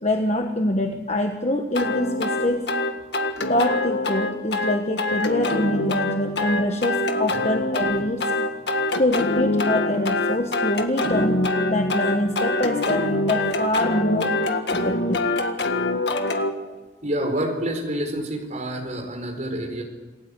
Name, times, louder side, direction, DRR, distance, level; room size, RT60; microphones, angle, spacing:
voice 1, 0.0-2.7 3.5-8.3 9.0-14.3 14.7-15.2, left 1 dB, 35° left, 4 dB, 1.5 m, -25 dB
sound 1, 1.7-16.5, left 2 dB, 60° left, 1.8 m, -24 dB
voice 2, 17.0-19.8, right 1 dB, 40° right, 3 dB, 4.5 m, -27 dB
28.0 x 18.0 x 8.4 m, 1.3 s
head